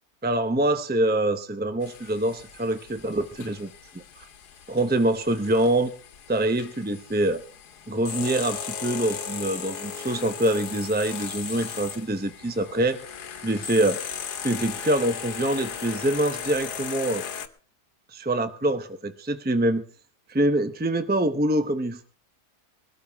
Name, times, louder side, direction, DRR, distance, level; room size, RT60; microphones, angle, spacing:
voice 1, 0.2-4.0 4.7-5.9 6.3-7.4 7.9-13.0 13.4-14.0 14.4-17.2 18.1-19.8 20.3-22.0, right 1 dB, 15° right, 10 dB, 0.3 m, -25 dB
sound 1, 1.8-17.5, left 7 dB, 85° left, 1.6 m, -37 dB
21.0 x 13.5 x 3.4 m, 0.38 s
omnidirectional pair, 1.7 m